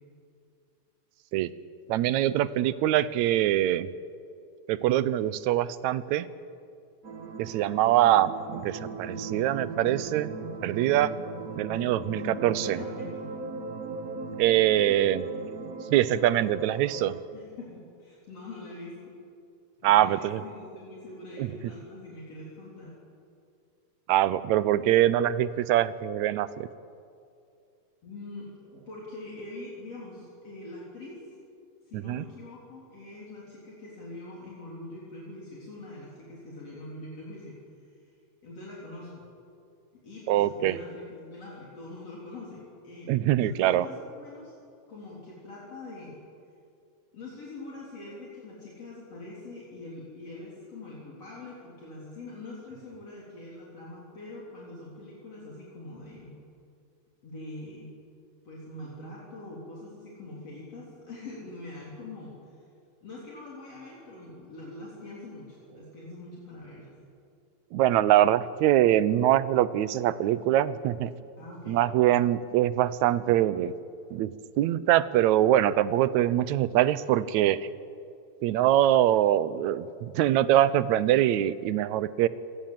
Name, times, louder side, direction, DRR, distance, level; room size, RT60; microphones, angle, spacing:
voice 1, 1.9-3.9 4.7-6.3 7.4-10.3 10.6-11.1 11.6-12.8 14.4-15.3 15.9-17.1 19.8-20.4 21.4-21.5 24.1-26.7 31.9-32.3 40.3-40.8 43.1-43.9 67.7-71.1 71.7-73.7 74.1-74.3 74.6-77.7 78.4-82.3, right 13 dB, 80° right, 16 dB, 2.0 m, -23 dB
sound 1, 7.0-17.2, right 4 dB, 45° right, 1.2 m, -38 dB
voice 2, 12.0-13.2 17.3-19.1 19.8-23.0 28.0-31.3 31.9-37.6 38.4-39.2 39.9-43.1 43.4-44.5 44.9-46.2 47.1-56.3 57.2-57.9 58.4-62.4 63.0-66.9 71.4-71.8, left 2 dB, 55° left, -5 dB, 4.6 m, -43 dB
26.5 x 18.0 x 7.6 m, 2.5 s
omnidirectional pair, 3.4 m